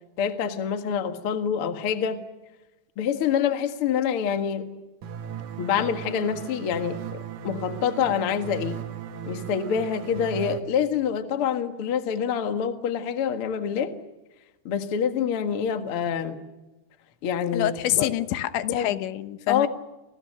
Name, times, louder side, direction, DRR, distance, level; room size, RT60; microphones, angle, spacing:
voice 1, 0.2-2.2 3.0-4.7 5.6-8.8 9.3-13.9 14.6-16.4 17.2-18.1 18.6-19.0 19.5-19.7, left 8 dB, 60° left, 7 dB, 1.4 m, -26 dB
sound 1, 5.0-10.6, right 9 dB, 70° right, 1.8 m, -37 dB
voice 2, 17.5-19.7, left 13 dB, 80° left, 11 dB, 3.4 m, -26 dB
29.5 x 24.5 x 6.6 m, 1.1 s
omnidirectional pair, 5.2 m